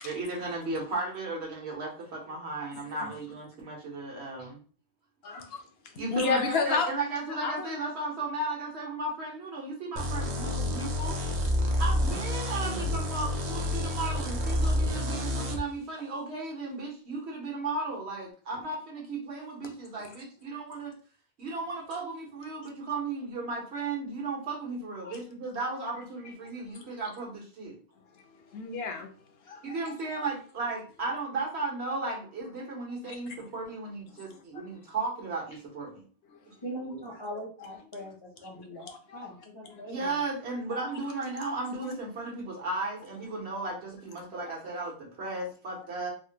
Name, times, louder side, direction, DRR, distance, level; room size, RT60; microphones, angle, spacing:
voice 1, 0.0-4.6 6.0-11.2 11.8-20.9 21.4-27.8 29.6-36.0 36.5-36.6 39.9-46.1, right 3 dB, 70° right, -2 dB, 1.2 m, -35 dB
voice 2, 2.7-3.1 5.2-5.6 6.1-6.9 7.2-7.8 11.6-12.1 20.0-20.1 25.0-25.2 26.2-26.9 28.1-29.1 29.4-30.2 33.0-33.5 34.1-34.7 36.3-36.4 38.8-39.3 39.6-39.8 40.7-41.0 41.8-41.9 44.4-44.6, left 4 dB, 70° left, 4 dB, 0.8 m, -34 dB
sound 1, 10.0-15.6, left 1 dB, 50° right, 0.5 m, -29 dB
voice 3, 36.6-40.2, equal, 35° left, -2 dB, 0.5 m, -41 dB
3.4 x 2.1 x 2.7 m, 0.41 s
omnidirectional pair, 1.1 m